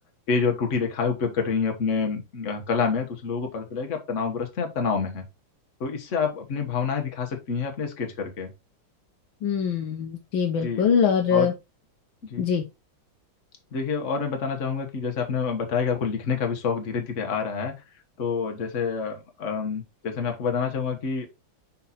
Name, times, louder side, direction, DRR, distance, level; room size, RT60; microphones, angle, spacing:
voice 1, 0.3-5.2 5.8-8.5 10.6-10.9 11.3-11.5 12.2-12.5 13.7-17.7 18.2-21.3, left 5 dB, 40° left, 3 dB, 1.5 m, -27 dB
voice 2, 9.4-11.5 12.4-12.6, left 7 dB, 80° left, 2 dB, 1.6 m, -23 dB
5.6 x 4.3 x 4.2 m, 0.26 s
omnidirectional pair, 2.1 m